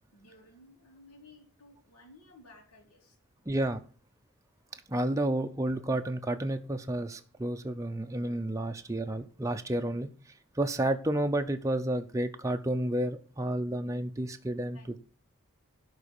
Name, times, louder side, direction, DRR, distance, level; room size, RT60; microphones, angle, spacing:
voice 1, 0.1-3.2 14.7-15.0, left 2 dB, 90° left, -2 dB, 2.8 m, -56 dB
voice 2, 3.5-3.8 4.9-10.1 10.6-15.0, right 1 dB, 15° right, 6 dB, 0.5 m, -31 dB
11.5 x 4.0 x 6.9 m, 0.39 s
head